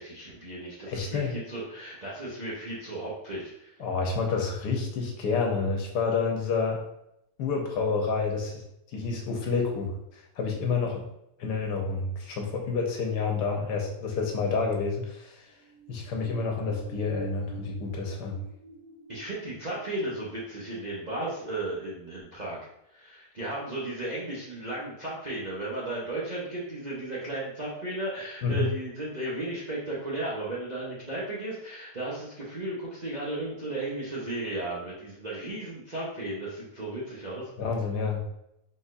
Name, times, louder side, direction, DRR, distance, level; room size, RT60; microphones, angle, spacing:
voice 1, 0.0-3.8 19.1-22.6 22.9-37.5, right 2 dB, 40° right, -7 dB, 0.6 m, -35 dB
voice 2, 0.9-1.3 3.8-6.8 7.4-8.6 8.9-11.0 11.4-15.5 15.9-18.4 28.4-28.7 37.6-38.3, left 4 dB, 75° left, 1 dB, 1.4 m, -29 dB
sound 1, 15.5-21.8 22.2-22.3, right 3 dB, 70° right, 1.5 m, -49 dB
4.2 x 4.1 x 2.5 m, 0.80 s
omnidirectional pair, 1.9 m